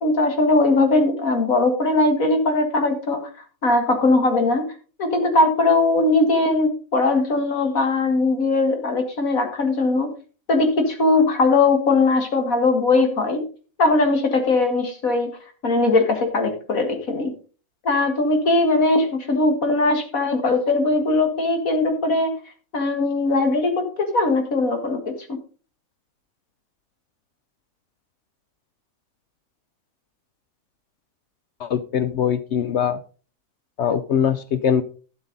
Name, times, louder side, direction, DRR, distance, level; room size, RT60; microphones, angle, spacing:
voice 1, 0.0-3.3 3.6-4.7 5.0-10.1 10.5-13.4 13.8-15.4 15.6-17.3 17.8-22.3 22.7-25.4, left 2 dB, 90° left, 5 dB, 2.3 m, -20 dB
voice 2, 31.6-33.0 33.8-34.8, left 8 dB, 65° left, 11 dB, 0.9 m, -22 dB
12.0 x 7.4 x 3.9 m, 0.37 s
omnidirectional pair, 1.4 m